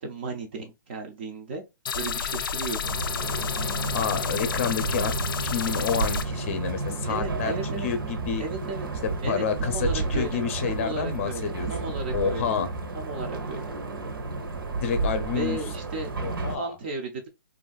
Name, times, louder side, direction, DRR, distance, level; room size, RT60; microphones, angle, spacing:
voice 1, 0.0-1.6 1.9-2.9 7.1-7.9 8.4-8.9 9.2-12.5 12.9-13.7 15.3-16.1 16.5-17.3, right 3 dB, 30° right, 0.5 m, -34 dB
sound 1, 1.9-6.2, left 7 dB, 75° left, 0.4 m, -31 dB
sound 2, 2.8-16.6, right 3 dB, 80° right, 1.0 m, -31 dB
voice 2, 3.9-5.1 5.4-8.4 9.0-11.7 12.1-12.7 14.8-15.6 16.2-16.7, left 6 dB, 35° left, 0.6 m, -29 dB
3.2 x 2.5 x 2.3 m
hypercardioid pair, 170°, 12 cm